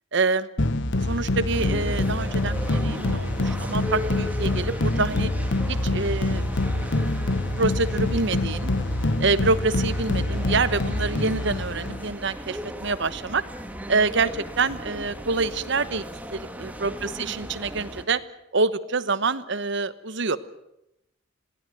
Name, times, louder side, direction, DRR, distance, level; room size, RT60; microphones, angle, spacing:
voice 1, 0.1-0.5 1.0-5.3 5.7-6.4 7.6-8.7 9.2-13.4 13.9-16.1 16.3-18.2 18.5-20.4, right 3 dB, 65° right, 14 dB, 1.1 m, -26 dB
sound 1, 0.6-12.1, left 2 dB, 60° left, 1.1 m, -26 dB
sound 2, 1.5-18.0, equal, 10° right, 1.7 m, -37 dB
22.0 x 17.0 x 9.1 m, 0.85 s
head